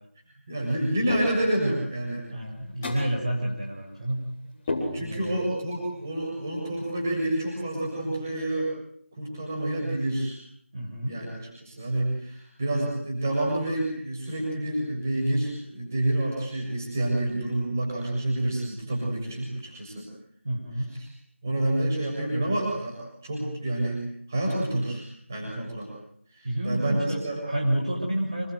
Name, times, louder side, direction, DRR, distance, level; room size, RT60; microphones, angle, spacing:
voice 1, 0.5-2.2 4.9-8.7 9.2-10.4 11.0-20.1 21.0-21.1 21.4-24.0 24.3-25.0 25.3-25.9 26.4-27.4, right 1 dB, 15° right, -2 dB, 6.8 m, -28 dB
sound 1, 1.1-1.7 2.8-3.2 4.7-5.4, left 2 dB, 10° left, 3.9 m, -31 dB
voice 2, 2.3-4.2 5.0-5.4 10.7-11.2 20.4-20.9 26.4-27.2 27.4-28.5, right 1 dB, 30° right, 0 dB, 5.9 m, -29 dB
27.5 x 22.5 x 9.3 m, 0.65 s
figure-of-eight pair, 175°, 7 cm